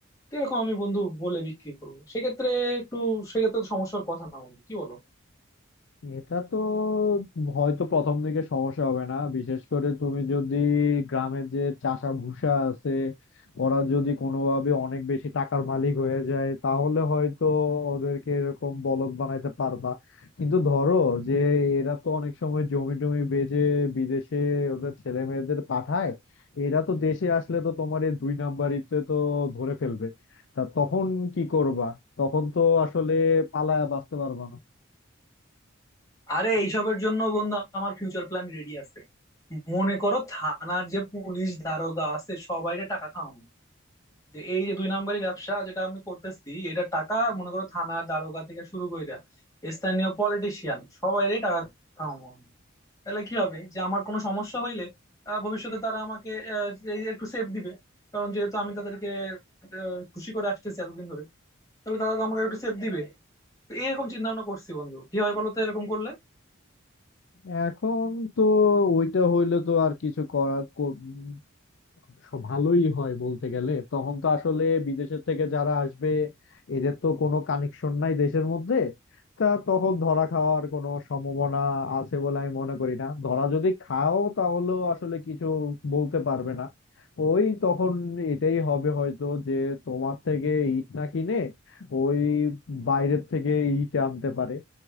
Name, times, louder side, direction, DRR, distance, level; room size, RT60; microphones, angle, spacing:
voice 1, 0.3-5.0 36.3-38.8 39.5-43.4 44.3-49.2 49.6-51.7 52.0-52.5 53.1-54.9 55.3-57.8 58.1-59.4 59.7-61.2 61.9-63.1 63.7-66.1, right 1 dB, 15° left, 2.7 m, -29 dB
voice 2, 6.0-13.1 13.6-20.0 20.4-26.2 26.6-30.1 30.6-34.6 67.4-71.4 72.3-76.3 76.7-78.9 79.4-86.7 87.2-94.6, left 4 dB, 60° left, 0.5 m, -26 dB
6.4 x 3.6 x 2.3 m
head